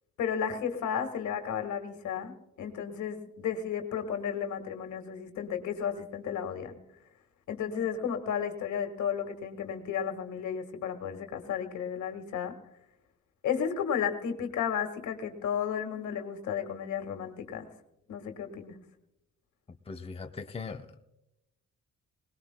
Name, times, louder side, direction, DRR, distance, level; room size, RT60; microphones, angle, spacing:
voice 1, 0.2-6.8 7.5-12.6 13.4-17.7 18.1-18.8, left 8 dB, 75° left, 7 dB, 1.7 m, -33 dB
voice 2, 19.7-21.0, left 4 dB, 20° left, 5 dB, 0.8 m, -40 dB
20.5 x 19.0 x 2.2 m, 0.88 s
cardioid pair, 90°, 30 cm